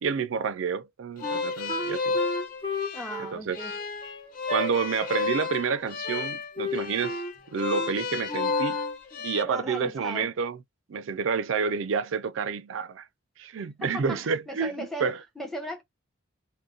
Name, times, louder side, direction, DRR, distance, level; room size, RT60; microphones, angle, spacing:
voice 1, 0.0-2.2 3.2-3.8 4.5-7.2 7.5-8.8 9.2-10.6 10.9-13.1 13.4-15.3, right 5 dB, 75° right, 0.4 m, -29 dB
sound 1, 1.2-9.4, left 4 dB, 40° left, 0.4 m, -32 dB
Wind instrument woodwind instrument, 1.2-4.7 5.1-5.4 5.6-6.3 6.6-7.3 7.7-7.9 8.3-9.0, left 2 dB, 25° left, 1.0 m, -33 dB
voice 2, 2.9-3.7 9.1-10.3 13.6-15.8, equal, ahead, 0.7 m, -38 dB
2.4 x 2.1 x 3.8 m
head